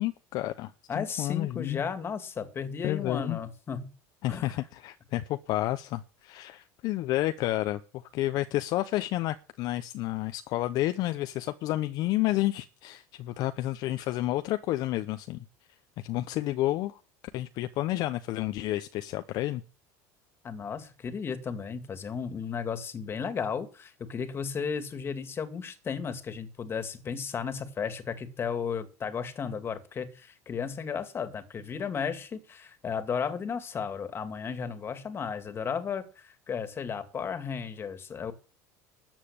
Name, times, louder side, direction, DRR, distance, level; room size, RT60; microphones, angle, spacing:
voice 1, 0.0-1.8 2.8-3.4 4.2-15.4 16.0-17.0 17.3-19.6, left 16 dB, 55° left, 0.8 m, -30 dB
voice 2, 0.9-3.8 4.3-4.6 20.4-38.3, left 6 dB, 30° left, 2.1 m, -34 dB
13.5 x 7.4 x 8.7 m
supercardioid pair, 115°, 8 cm